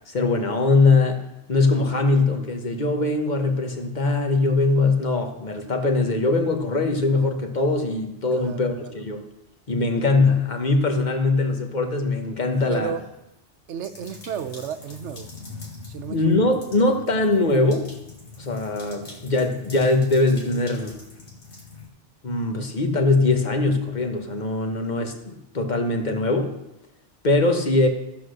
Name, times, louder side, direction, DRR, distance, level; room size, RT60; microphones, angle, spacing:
voice 1, 0.1-1.2 1.5-9.2 9.7-12.9 16.1-17.9 18.4-21.0 22.2-26.5 27.2-27.9, left 3 dB, 40° left, 4 dB, 1.4 m, -21 dB
voice 2, 8.3-9.0 12.7-13.1 13.7-15.3 15.9-16.3, right 7 dB, 85° right, 10 dB, 1.1 m, -33 dB
sound 1, 12.5-13.1 13.8-21.9, left 3 dB, 75° left, 2.3 m, -43 dB
13.5 x 6.2 x 6.5 m, 0.91 s
omnidirectional pair, 1.2 m